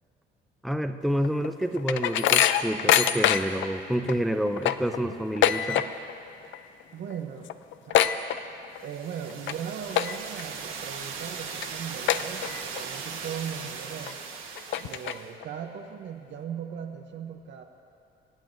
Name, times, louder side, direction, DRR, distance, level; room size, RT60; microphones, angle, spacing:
voice 1, 0.6-5.9, equal, ahead, 8 dB, 0.5 m, -28 dB
sound 1, 1.2-3.7 4.1-4.2 4.5-6.2 6.4-6.8 7.1-7.2 7.5-8.9 9.3-9.5 9.9-10.4 10.9-11.0 11.6-11.7 12.1-12.8 13.2-13.3 14.1-14.2 14.6-15.5, left 11 dB, 75° left, 0.4 m, -24 dB
voice 2, 6.9-7.5 7.8-8.1 8.8-14.2 14.8-17.6, right 8 dB, 65° right, 3 dB, 0.7 m, -38 dB
sound 2, 8.8-15.3, right 6 dB, 90° right, 1.3 m, -38 dB
25.5 x 9.0 x 2.6 m, 2.5 s
cardioid pair, 90°, 20 cm